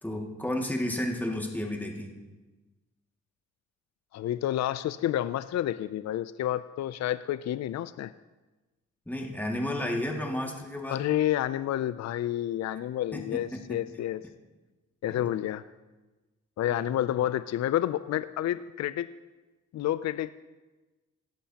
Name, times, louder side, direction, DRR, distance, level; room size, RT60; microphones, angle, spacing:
voice 1, 0.0-2.1 9.1-11.0 13.1-13.8 15.1-15.3 16.7-17.2, left 1 dB, 5° left, 0 dB, 2.1 m, -32 dB
voice 2, 4.1-8.1 10.9-14.2 15.0-15.6 16.6-19.1 19.7-20.3, left 12 dB, 60° left, 14 dB, 0.4 m, -29 dB
17.5 x 11.0 x 2.9 m, 1.2 s
supercardioid pair, 55°, 30 cm